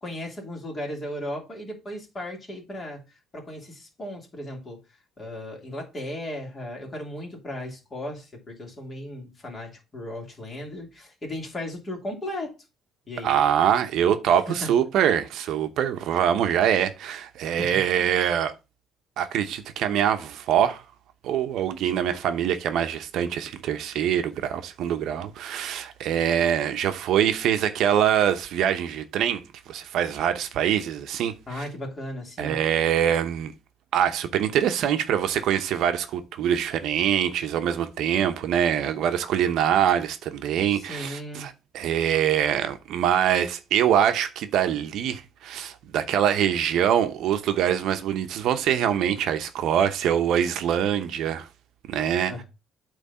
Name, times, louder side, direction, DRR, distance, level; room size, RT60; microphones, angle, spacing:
voice 1, 0.0-3.0 3.3-4.8 5.2-12.5 13.1-13.3 14.5-14.7 17.6-18.1 31.5-32.6 40.7-41.5 52.3-52.4, left 1 dB, 25° left, 2.8 m, -36 dB
voice 2, 13.2-18.5 19.2-20.8 21.2-31.6 32.4-33.5 33.9-51.5 51.9-52.4, right 9 dB, 65° right, 0.8 m, -24 dB
8.5 x 3.3 x 5.5 m
cardioid pair, 135°, 0 cm